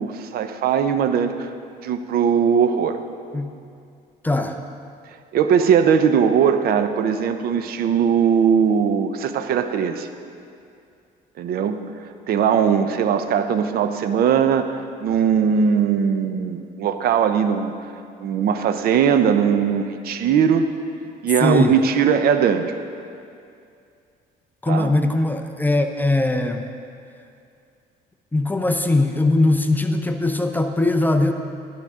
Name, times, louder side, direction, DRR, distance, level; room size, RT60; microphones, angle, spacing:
voice 1, 0.0-1.5 1.8-3.0 5.3-10.1 11.4-11.8 12.3-17.7 18.2-20.7 21.2-22.7 24.7-24.9, right 7 dB, 65° right, 9 dB, 0.7 m, -19 dB
voice 2, 4.2-4.6 21.4-21.8 24.6-26.7 28.3-31.3, left 2 dB, 10° left, 6 dB, 0.6 m, -20 dB
12.0 x 11.5 x 3.6 m, 2.4 s
cardioid pair, 110°, 17 cm